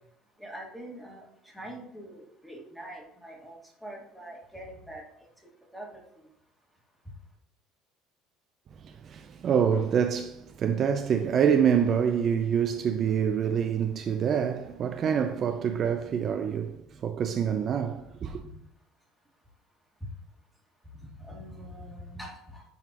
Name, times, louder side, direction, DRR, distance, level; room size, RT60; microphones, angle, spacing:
voice 1, 0.4-1.3 1.5-3.6 3.8-5.0 5.7-6.0 21.2-22.6, right 1 dB, ahead, 2.1 m, -43 dB
voice 2, 8.8-18.4, right 7 dB, 40° right, 0.5 m, -26 dB
11.0 x 4.1 x 2.9 m
cardioid pair, 125°, 0 cm